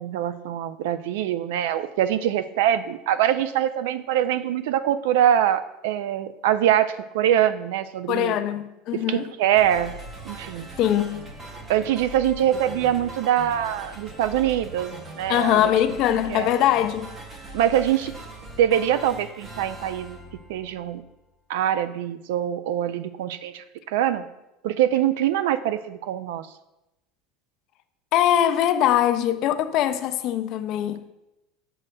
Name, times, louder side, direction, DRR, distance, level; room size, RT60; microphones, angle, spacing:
voice 1, 0.0-8.3 8.9-9.9 10.3-10.7 11.7-15.7 16.3-16.5 17.5-18.1 18.6-20.2 20.5-21.0 21.5-24.2 24.6-26.5, right 11 dB, 80° right, 0.3 m, -23 dB
voice 2, 8.1-9.3 10.8-11.3 15.3-17.1 28.1-31.1, left 11 dB, 45° left, 0.3 m, -22 dB
sound 1, 9.5-21.2, right 1 dB, 20° right, 0.6 m, -41 dB
7.3 x 6.3 x 2.2 m
cardioid pair, 165°, 0 cm